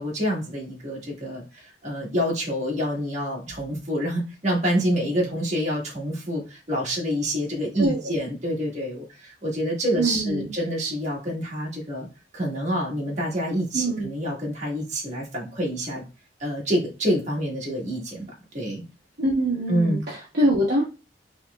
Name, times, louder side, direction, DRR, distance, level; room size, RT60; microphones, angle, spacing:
voice 1, 0.0-12.1 12.3-16.0 16.4-18.8 19.7-20.0, equal, 40° right, -3 dB, 1.4 m, -27 dB
voice 2, 7.8-8.1 10.0-10.5 13.7-14.1 19.2-20.8, right 1 dB, 60° right, -4 dB, 0.9 m, -24 dB
4.2 x 3.1 x 2.2 m, 0.31 s
head